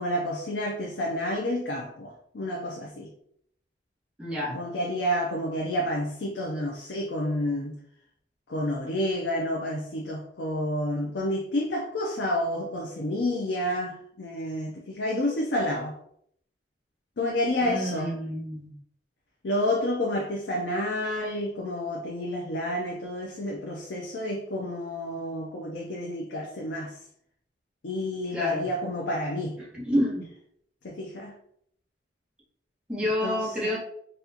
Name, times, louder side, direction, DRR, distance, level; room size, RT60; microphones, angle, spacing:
voice 1, 0.0-3.1 4.5-7.8 8.5-16.0 17.2-18.1 19.4-27.0 27.8-29.6 30.8-31.3 33.0-33.8, left 1 dB, 75° left, -1 dB, 0.6 m, -29 dB
voice 2, 4.2-4.5 17.6-18.7 28.3-28.6 29.7-30.2 32.9-33.8, equal, 5° right, -7 dB, 1.1 m, -28 dB
4.0 x 2.3 x 2.8 m, 0.68 s
head